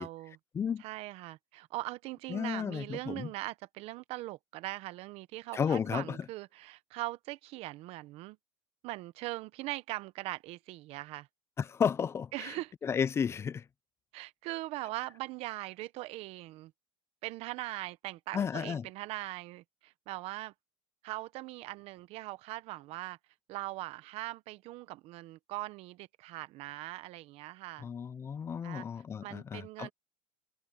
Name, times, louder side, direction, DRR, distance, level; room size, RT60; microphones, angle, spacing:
voice 1, 0.0-0.4 0.8-8.4 8.8-11.3 12.3-12.7 14.1-16.7 17.2-20.5 21.0-23.2 23.5-27.9 28.6-28.9 29.2-29.9, right 18 dB, 55° right, 0.9 m, -41 dB
voice 2, 2.3-3.3 5.5-6.2 11.6-12.5 12.8-13.6 18.3-18.9 27.8-29.9, left 7 dB, 20° left, 0.4 m, -33 dB
supercardioid pair, 130°, 12 cm